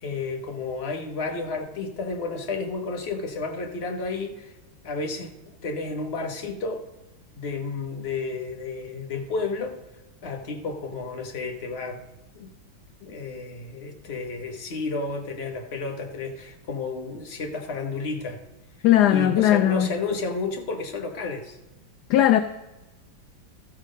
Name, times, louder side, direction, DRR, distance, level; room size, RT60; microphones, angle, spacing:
voice 1, 0.0-4.5 4.8-5.3 5.6-6.8 7.3-9.8 10.2-12.0 12.3-12.5 13.0-18.4 19.1-21.6, left 3 dB, 40° left, 3 dB, 1.2 m, -31 dB
voice 2, 18.8-19.9 22.1-22.4, left 12 dB, 75° left, 8 dB, 1.0 m, -18 dB
13.0 x 7.4 x 5.1 m, 1.0 s
omnidirectional pair, 2.1 m